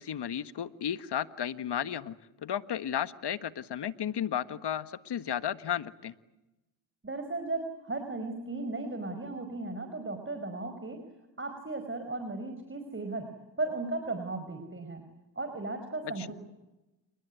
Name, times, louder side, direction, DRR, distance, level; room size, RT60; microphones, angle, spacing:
voice 1, 0.0-6.1 16.2-16.3, left 9 dB, 60° left, 13 dB, 1.6 m, -34 dB
voice 2, 7.0-11.0 11.4-13.3 13.6-15.0 15.4-16.3, right 2 dB, 25° right, 7 dB, 5.1 m, -36 dB
29.5 x 20.0 x 9.4 m, 0.98 s
supercardioid pair, 55°, 45 cm